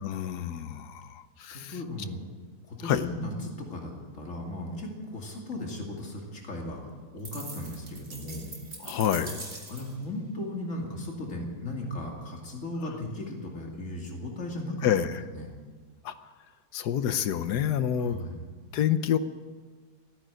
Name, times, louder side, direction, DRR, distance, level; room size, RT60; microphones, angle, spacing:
voice 1, 0.0-1.8 2.8-3.1 8.8-9.4 14.8-15.1 16.0-16.1 16.7-18.2 18.7-19.2, left 9 dB, 75° left, 12 dB, 1.4 m, -28 dB
voice 2, 1.5-2.2 2.7-6.8 7.1-8.5 9.7-14.9 15.3-15.5 18.0-18.5, left 1 dB, 45° left, 0 dB, 2.9 m, -36 dB
sound 1, 7.2-10.0, right 2 dB, 40° right, 2.5 m, -42 dB
15.5 x 9.5 x 9.2 m, 1.4 s
omnidirectional pair, 1.8 m